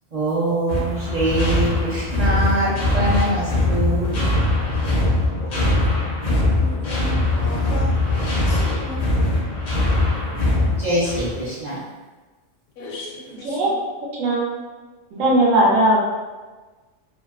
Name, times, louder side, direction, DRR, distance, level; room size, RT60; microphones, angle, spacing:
voice 1, 0.1-4.2 10.8-11.8, right 1 dB, 55° right, -9 dB, 0.5 m, -23 dB
sound 1, 0.7-11.4, left 1 dB, 50° left, 0.5 m, -21 dB
voice 2, 5.4-8.0 8.4-9.0 12.8-13.7, left 2 dB, 75° left, -1 dB, 0.9 m, -36 dB
voice 3, 14.2-14.6 15.1-16.1, right 1 dB, 80° right, -3 dB, 1.0 m, -18 dB
2.6 x 2.1 x 2.3 m, 1.3 s
omnidirectional pair, 1.3 m